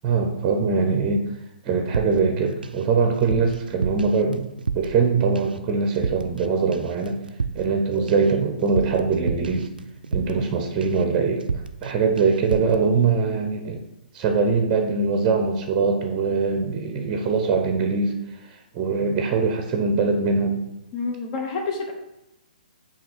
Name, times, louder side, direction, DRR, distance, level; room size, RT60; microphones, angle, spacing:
voice 1, 0.0-1.2 1.6-4.5 4.7-7.2 7.5-9.7 10.1-11.5 11.8-13.8 14.1-18.1 18.7-20.6, right 4 dB, 25° right, 4 dB, 0.7 m, -22 dB
sound 1, 1.9-2.9 3.1-5.1 5.4-5.7 5.9-6.5 6.7-10.5 10.8-11.1 11.4-11.9 12.2-12.8, right 5 dB, 70° right, 0.4 m, -30 dB
voice 2, 20.9-21.9, left 4 dB, 35° left, 1 dB, 1.1 m, -28 dB
7.6 x 2.9 x 4.4 m, 0.90 s
figure-of-eight pair, 125°, 5 cm